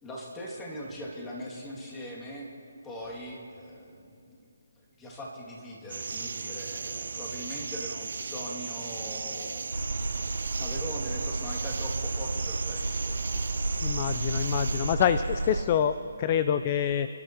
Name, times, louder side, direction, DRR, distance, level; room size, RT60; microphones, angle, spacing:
voice 1, 0.0-2.5 2.8-4.4 5.0-10.1 10.6-13.3 14.1-14.3, equal, 10° left, -4 dB, 2.4 m, -41 dB
sound 1, 5.9-15.0, right 4 dB, 60° right, 0.6 m, -36 dB
sound 2, 9.7-15.6, right 2 dB, 80° right, 0.9 m, -32 dB
voice 2, 13.8-17.1, left 9 dB, 30° left, 11 dB, 0.4 m, -26 dB
29.0 x 11.5 x 3.0 m, 2.5 s
figure-of-eight pair, 145°, 0 cm